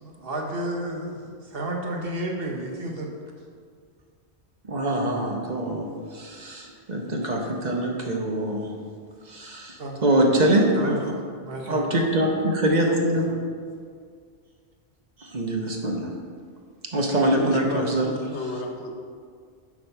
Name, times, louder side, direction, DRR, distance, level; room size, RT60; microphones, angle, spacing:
voice 1, 0.0-3.1 9.8-10.0 10.7-11.1 11.4-12.0, right 1 dB, 60° right, 0 dB, 1.3 m, -31 dB
voice 2, 4.7-8.7 9.3-11.0 11.7-13.3 15.2-16.1 16.9-18.1, right 1 dB, 40° right, 0 dB, 1.0 m, -24 dB
voice 3, 17.4-18.9, left 1 dB, 75° left, 3 dB, 1.2 m, -32 dB
8.0 x 4.9 x 5.6 m, 2.1 s
omnidirectional pair, 1.1 m